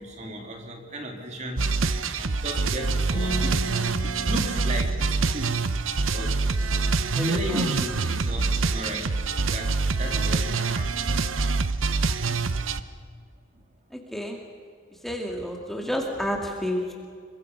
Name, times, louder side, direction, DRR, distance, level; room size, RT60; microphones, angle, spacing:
voice 1, 0.0-1.7 2.1-5.6 6.1-6.4 7.3-9.2 9.5-11.5 15.8-15.9, equal, 35° right, 3 dB, 2.9 m, -36 dB
sound 1, 1.6-12.8, right 4 dB, 85° right, 0.9 m, -25 dB
sound 2, 3.1-6.3, right 1 dB, 65° left, 4.3 m, -37 dB
voice 2, 7.1-7.6 13.9-14.4 15.0-16.9, left 1 dB, ahead, 0 dB, 2.0 m, -30 dB
27.0 x 23.0 x 5.5 m, 2.1 s
head